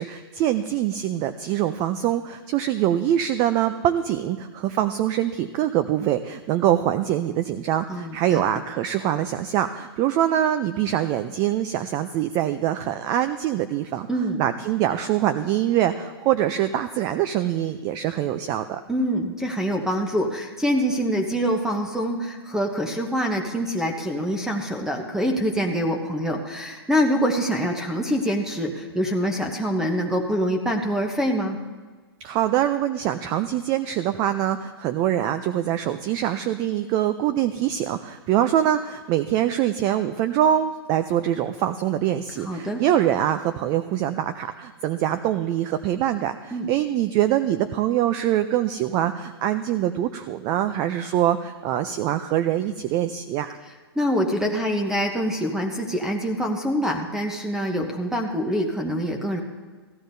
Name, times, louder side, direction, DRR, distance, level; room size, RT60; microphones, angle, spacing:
voice 1, 0.0-14.1 14.4-18.8 32.2-53.6, right 11 dB, 30° right, 10 dB, 0.4 m, -24 dB
voice 2, 7.9-8.4 14.1-14.4 18.9-31.6 42.4-42.8 46.5-46.7 54.0-59.4, equal, 5° right, 3 dB, 0.8 m, -25 dB
15.5 x 12.5 x 2.7 m, 1.4 s
hypercardioid pair, 140°, 14 cm